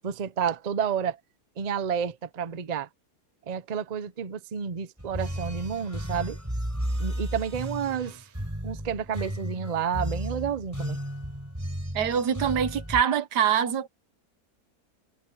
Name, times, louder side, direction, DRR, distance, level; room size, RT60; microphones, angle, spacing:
voice 1, 0.0-1.2 1.6-2.9 3.5-6.4 7.0-8.3 8.6-11.0, right 7 dB, 40° right, 0.6 m, -30 dB
sound 1, 5.0-13.0, equal, 10° right, 4.6 m, -33 dB
voice 2, 11.9-13.9, right 8 dB, 85° right, 1.6 m, -24 dB
omnidirectional pair, 1.7 m